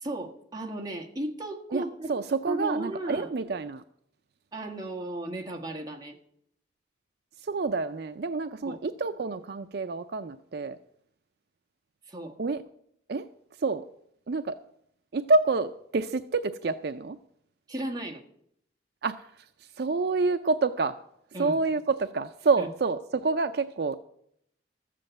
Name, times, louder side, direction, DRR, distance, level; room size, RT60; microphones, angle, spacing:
voice 1, 0.0-2.1 2.5-3.3 4.5-6.2 8.6-8.8 12.0-12.3 17.7-18.2 21.3-21.6 22.6-22.7, right 1 dB, 20° right, 0 dB, 1.5 m, -35 dB
voice 2, 1.7-3.8 7.4-10.8 12.4-12.6 13.1-13.3 13.6-13.8 14.3-14.6 15.1-17.2 19.0-21.0 21.4-24.0, right 3 dB, 55° right, 9 dB, 0.4 m, -28 dB
13.5 x 7.6 x 7.7 m, 0.72 s
head